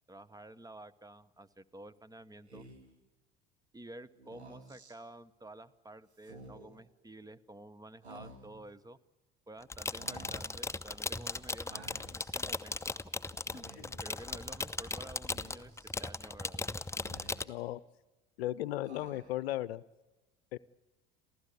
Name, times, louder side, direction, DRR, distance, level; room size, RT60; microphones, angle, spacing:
voice 1, 0.1-2.6 3.7-9.0 9.5-13.0 13.5-13.7 14.0-16.6, right 1 dB, 10° right, 16 dB, 1.0 m, -51 dB
Speech, 2.5-3.0 4.2-5.0 6.2-6.8 8.0-8.7 10.0-10.6 11.7-12.4 13.5-14.1 15.3-16.0 16.9-17.7 18.8-19.5, right 2 dB, 90° right, 2.6 m, -53 dB
sound 1, 9.6-17.4, left 3 dB, 10° left, 0.8 m, -38 dB
voice 2, 17.5-17.8 18.4-19.8 20.5-20.6, left 15 dB, 70° left, 20 dB, 0.7 m, -35 dB
28.0 x 15.5 x 8.4 m, 1.1 s
figure-of-eight pair, 65°, 32 cm